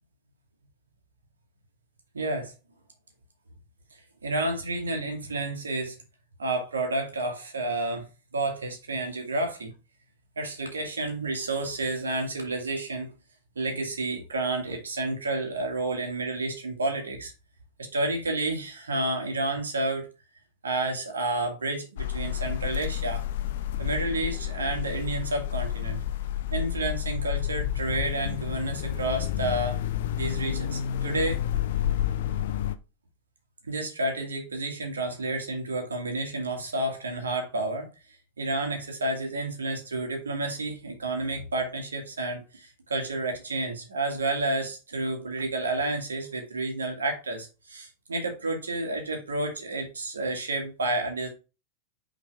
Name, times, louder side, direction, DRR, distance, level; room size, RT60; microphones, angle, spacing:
voice 1, 2.1-2.5 3.9-6.0 6.4-8.1 8.3-9.7 10.4-13.2 13.6-17.3 17.8-20.1 20.6-23.2 23.8-26.0 26.5-29.8 30.2-31.4 33.7-37.9 38.4-51.3, right 2 dB, 70° right, 3 dB, 1.8 m, -30 dB
sound 1, 22.0-32.7, left 11 dB, 55° left, 0.5 m, -30 dB
5.9 x 3.9 x 4.7 m, 0.30 s
figure-of-eight pair, 90°, 0 cm